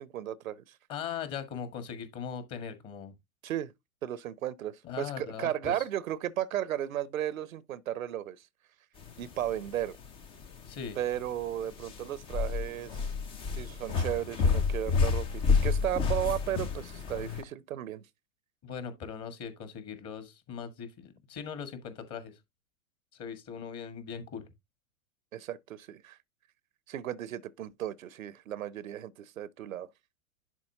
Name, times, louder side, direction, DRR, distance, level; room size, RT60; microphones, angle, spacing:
voice 1, 0.0-0.8 3.4-3.7 4.0-8.4 9.2-10.0 11.0-13.1 13.5-18.1 25.3-26.2 26.9-29.9, right 11 dB, 70° right, 0.7 m, -35 dB
voice 2, 0.9-3.1 4.8-5.8 10.7-11.0 18.6-22.4 23.1-24.5, left 7 dB, 35° left, 1.7 m, -40 dB
sound 1, 9.0-17.4, left 5 dB, 15° left, 0.4 m, -30 dB
11.0 x 4.2 x 2.7 m
figure-of-eight pair, 100°, 42 cm